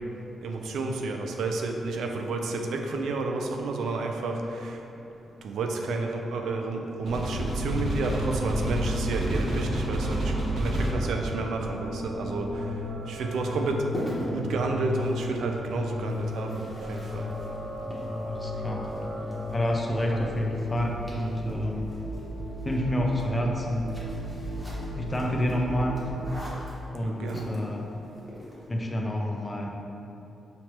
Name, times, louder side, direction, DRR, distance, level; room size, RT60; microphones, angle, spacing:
voice 1, 0.4-4.8 5.4-12.5 13.1-13.9 14.3-16.6 16.9-17.3 27.0-27.5, right 3 dB, 85° right, 3 dB, 0.4 m, -30 dB
sound 1, 7.0-26.4, equal, 65° right, 0.8 m, -32 dB
sound 2, 13.0-28.7, equal, 5° left, 1.0 m, -43 dB
voice 2, 18.2-18.9 19.5-21.9 22.6-23.9 24.9-26.1 26.9-27.9 28.7-29.7, equal, 20° left, 0 dB, 0.5 m, -28 dB
5.6 x 3.2 x 3.0 m, 2.8 s
wide cardioid pair, 125°, 0 cm